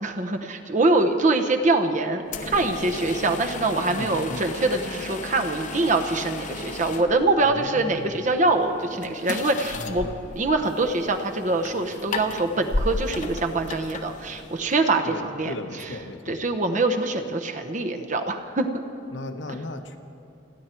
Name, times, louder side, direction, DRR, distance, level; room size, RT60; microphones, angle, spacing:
voice 1, 0.0-2.2 2.5-10.1 10.4-15.5 16.3-18.7, right 2 dB, 40° right, 5 dB, 0.9 m, -24 dB
sound 1, 2.3-14.8, left 2 dB, 40° left, 0.9 m, -35 dB
voice 2, 3.9-4.5 7.4-8.2 9.7-10.2 15.0-16.4 19.1-20.0, left 2 dB, 65° left, 6 dB, 1.2 m, -36 dB
29.5 x 10.5 x 4.5 m, 2.9 s
head